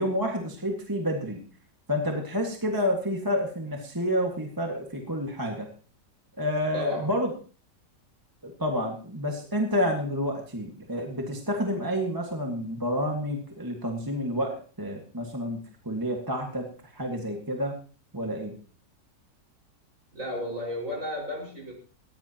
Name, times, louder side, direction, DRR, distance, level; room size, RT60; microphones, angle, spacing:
voice 1, 0.0-1.4 1.9-5.7 6.4-7.3 8.4-15.6 15.8-16.7 16.9-17.7 18.1-18.5, equal, 10° right, 2 dB, 1.7 m, -29 dB
voice 2, 6.7-7.1 20.1-21.7, left 1 dB, 45° right, -1 dB, 5.8 m, -33 dB
18.5 x 15.5 x 3.0 m, 0.38 s
omnidirectional pair, 1.9 m